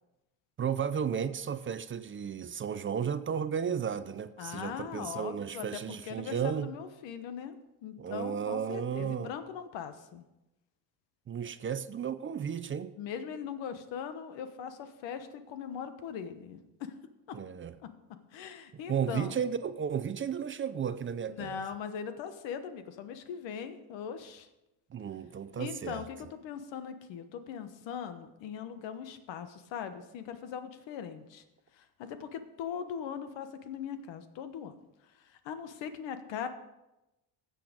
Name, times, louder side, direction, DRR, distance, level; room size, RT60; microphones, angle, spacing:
voice 1, 0.6-6.7 8.0-9.3 11.3-12.9 17.3-17.7 18.9-21.6 24.9-26.0, right 7 dB, 30° right, 12 dB, 0.5 m, -34 dB
voice 2, 4.4-7.6 7.8-10.2 13.0-16.9 17.3-17.4 17.8-17.9 18.3-19.4 21.3-24.5 25.6-31.4 31.7-34.8 35.1-36.5, left 7 dB, 85° left, 10 dB, 1.2 m, -40 dB
13.5 x 7.8 x 5.1 m, 0.96 s
cardioid pair, 130°, 43 cm